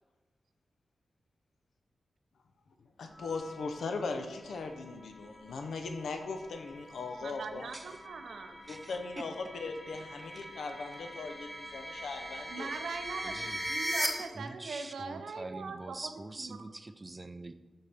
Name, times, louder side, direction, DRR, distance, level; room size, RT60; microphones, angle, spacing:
voice 1, 3.0-7.7 8.7-12.7, left 4 dB, 85° left, 5 dB, 0.7 m, -39 dB
sound 1, 3.1-14.1, equal, 5° left, 0.9 m, -41 dB
voice 2, 7.2-8.6 12.5-16.1 16.4-16.7, right 4 dB, 85° right, 7 dB, 0.6 m, -41 dB
voice 3, 8.7-9.3 10.4-10.5 13.2-13.6 14.3-17.5, right 2 dB, 20° right, 10 dB, 0.4 m, -44 dB
11.5 x 4.3 x 3.5 m, 1.2 s
wide cardioid pair, 155°, 0 cm